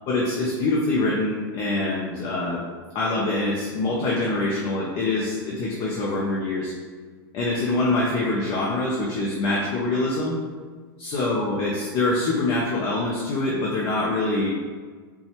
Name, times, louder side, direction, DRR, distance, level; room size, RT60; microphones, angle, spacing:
voice 1, 0.1-2.6 2.9-6.7 7.3-10.4 11.0-14.5, left 2 dB, 45° left, -4 dB, 0.6 m, -24 dB
3.9 x 2.3 x 2.9 m, 1.5 s
hypercardioid pair, 110°, 12 cm